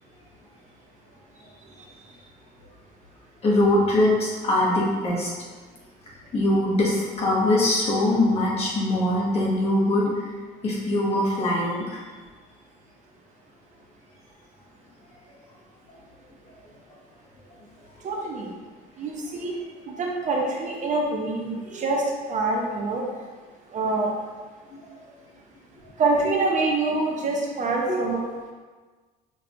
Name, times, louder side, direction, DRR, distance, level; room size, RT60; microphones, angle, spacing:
voice 1, 3.4-5.3 6.3-10.1 10.6-12.0 24.7-24.8 27.9-28.0, left 1 dB, 35° left, -5 dB, 1.4 m, -22 dB
voice 2, 18.0-18.5 19.0-19.6 19.9-23.0 23.7-24.1 26.0-28.2, right 3 dB, 45° right, -1 dB, 0.7 m, -25 dB
6.0 x 3.1 x 2.5 m, 1.4 s
cardioid pair, 110°, 17 cm